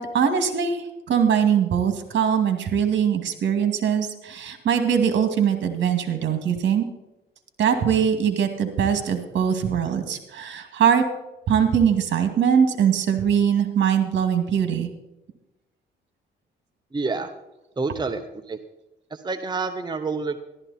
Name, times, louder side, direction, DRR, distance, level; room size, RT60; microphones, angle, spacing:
voice 1, 0.0-6.8 7.6-11.0 11.5-14.9, right 8 dB, 65° right, 7 dB, 2.2 m, -22 dB
voice 2, 16.9-17.3 17.8-18.2 18.5-18.6 19.1-20.4, right 4 dB, 20° right, 7 dB, 0.9 m, -28 dB
13.5 x 12.5 x 4.2 m, 0.98 s
cardioid pair, 90°, 20 cm